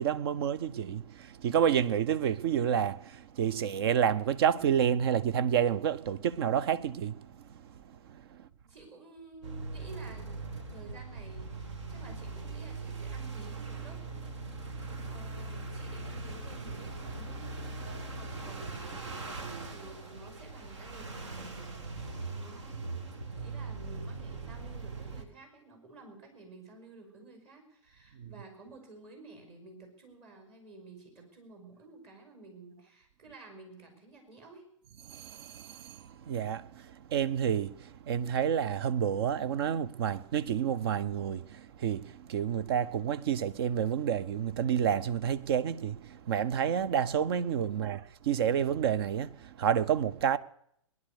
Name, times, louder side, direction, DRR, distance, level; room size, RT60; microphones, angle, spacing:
voice 1, 0.0-7.2 7.5-7.6 8.1-8.4 28.2-28.3 35.1-48.0 48.3-50.4, right 8 dB, 50° right, 0.7 m, -29 dB
voice 2, 8.4-14.3 15.0-17.8 18.1-34.6 47.6-48.0, right 3 dB, 35° right, 5.5 m, -52 dB
sound 1, 9.4-25.2, right 3 dB, 65° right, 2.0 m, -40 dB
20.0 x 10.5 x 6.7 m
figure-of-eight pair, 110°, 16 cm